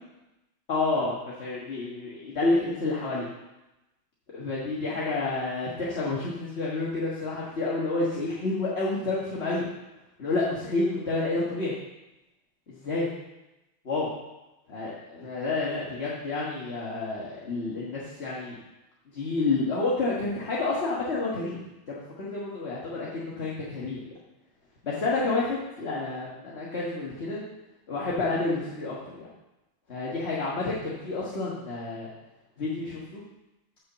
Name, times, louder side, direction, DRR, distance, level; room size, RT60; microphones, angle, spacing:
voice 1, 0.7-3.3 4.3-9.7 10.2-11.7 12.7-13.1 13.8-14.1 14.7-18.6 19.1-21.6 21.9-24.0 24.8-27.4 27.9-29.3 29.9-32.1 32.6-33.2, left 3 dB, 35° left, -6 dB, 1.5 m, -29 dB
7.3 x 6.4 x 7.2 m, 0.98 s
omnidirectional pair, 2.3 m